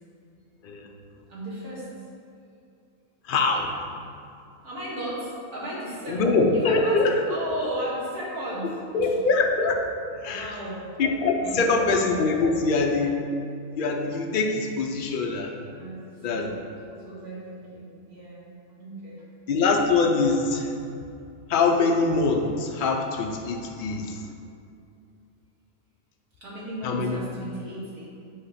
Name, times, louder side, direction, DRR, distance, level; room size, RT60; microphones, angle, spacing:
voice 1, 1.3-1.9 4.6-6.2 6.5-8.8 10.2-10.9 11.3-11.8 15.7-18.5 18.8-19.2 26.4-28.1, right 1 dB, 85° right, -8 dB, 2.3 m, -35 dB
voice 2, 3.3-3.7 6.1-7.2 8.9-9.8 10.2-10.5 11.0-13.2 13.8-15.5 16.2-16.5 19.5-20.7 21.5-24.2 26.8-27.2, left 3 dB, 65° left, 2 dB, 0.5 m, -23 dB
7.5 x 2.9 x 5.7 m, 2.5 s
omnidirectional pair, 1.5 m